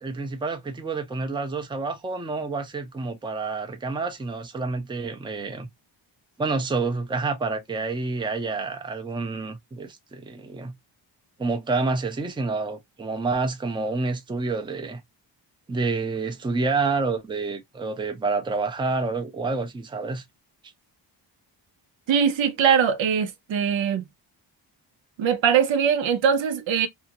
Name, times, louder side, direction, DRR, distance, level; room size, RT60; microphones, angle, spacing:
voice 1, 0.0-5.7 6.4-10.7 11.4-15.0 15.7-20.2, right 3 dB, 10° right, 0.5 m, -28 dB
voice 2, 22.1-24.0 25.2-26.9, right 7 dB, 80° right, 0.7 m, -21 dB
2.7 x 2.3 x 2.8 m
wide cardioid pair, 125°, 45 cm